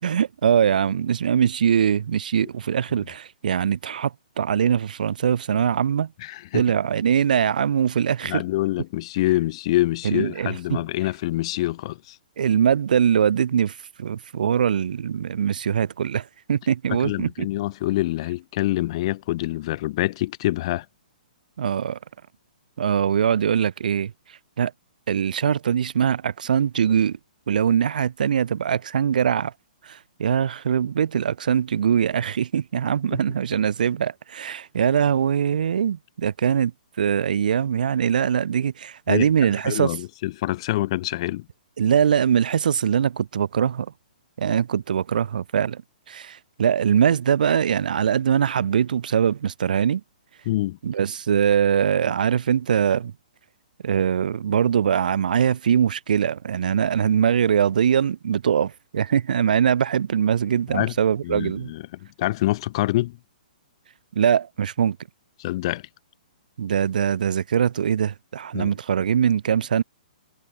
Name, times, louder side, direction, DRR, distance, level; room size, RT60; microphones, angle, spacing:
voice 1, 0.0-6.1 6.5-8.4 10.0-10.8 12.4-17.5 21.6-22.0 22.8-24.1 24.6-24.7 25.1-27.2 27.5-29.5 29.8-36.7 37.0-39.9 41.8-43.9 44.4-45.8 46.1-50.0 50.8-53.1 53.8-61.7 64.1-65.0 66.6-69.8, right 8 dB, 65° right, 5.5 m, -22 dB
voice 2, 6.2-6.6 8.3-12.2 16.9-20.8 33.1-33.2 39.1-39.3 39.6-41.4 50.4-50.8 60.7-60.9 61.2-63.2 65.4-65.9 68.5-68.7, left 17 dB, 40° left, 4.9 m, -26 dB
hypercardioid pair, 160°, 5 cm